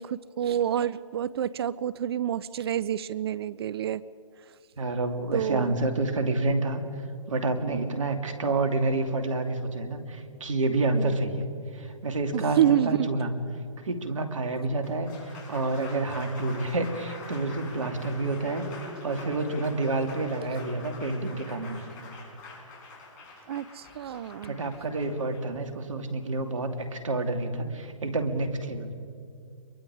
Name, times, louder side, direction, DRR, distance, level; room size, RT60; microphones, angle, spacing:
voice 1, 0.0-4.0 5.3-5.8 10.9-11.1 12.3-13.1 23.5-24.5, right 10 dB, 50° right, 19 dB, 0.5 m, -28 dB
voice 2, 4.8-6.8 7.3-11.5 11.7-13.3 13.8-21.8 24.5-28.9, right 2 dB, 75° right, 6 dB, 2.7 m, -29 dB
Applause, 14.8-26.9, left 3 dB, 40° left, 6.3 m, -45 dB
27.0 x 22.5 x 4.9 m, 2.4 s
hypercardioid pair, 135°, 17 cm